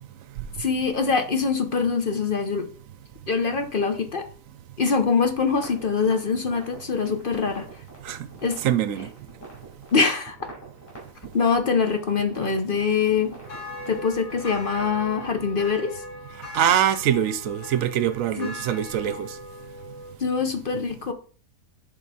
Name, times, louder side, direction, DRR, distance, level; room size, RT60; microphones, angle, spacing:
voice 1, 0.6-2.7 3.3-4.2 4.8-7.7 8.4-8.6 9.9-10.4 11.3-13.3 13.9-15.9 18.4-18.5 20.2-21.1, left 5 dB, 45° left, 0.9 m, -24 dB
sound 1, 5.4-15.3, right 2 dB, 10° left, 4.2 m, -45 dB
voice 2, 8.6-9.1 16.5-19.3, right 10 dB, 70° right, 1.0 m, -23 dB
sound 2, 13.4-20.1, left 2 dB, 75° left, 2.2 m, -39 dB
10.0 x 3.7 x 4.2 m
omnidirectional pair, 1.5 m